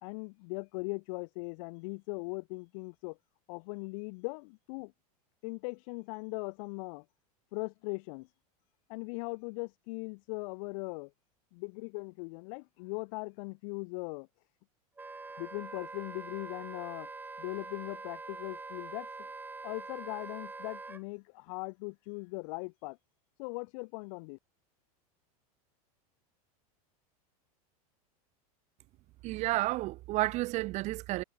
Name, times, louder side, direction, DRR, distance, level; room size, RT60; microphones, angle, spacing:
voice 1, 0.0-3.2 3.5-4.9 5.4-7.0 7.5-8.3 8.9-11.1 11.5-14.3 15.3-17.1 17.4-19.3 19.6-23.0 23.4-24.4, left 31 dB, 60° left, 2.2 m, -40 dB
Wind instrument woodwind instrument, 15.0-21.0, right 3 dB, 10° right, 0.9 m, -44 dB
voice 2, 29.2-31.2, right 18 dB, 35° right, 0.4 m, -31 dB
supercardioid pair, 130°, 19 cm